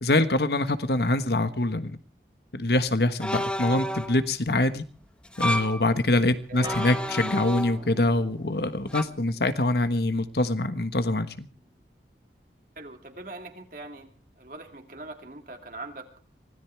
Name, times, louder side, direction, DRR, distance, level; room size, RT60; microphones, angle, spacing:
voice 1, 0.0-2.0 2.5-4.8 5.4-11.5, left 2 dB, 65° left, 11 dB, 1.4 m, -24 dB
sound 1, 3.2-4.2 5.2-5.8 6.6-8.0 8.9-9.0, equal, 5° left, 0.9 m, -30 dB
Acoustic guitar, 6.6-11.8, right 2 dB, 25° right, 1.6 m, -45 dB
voice 2, 12.8-14.1 14.4-16.1, right 2 dB, 50° right, 4 dB, 2.6 m, -41 dB
24.5 x 17.0 x 3.5 m, 0.37 s
head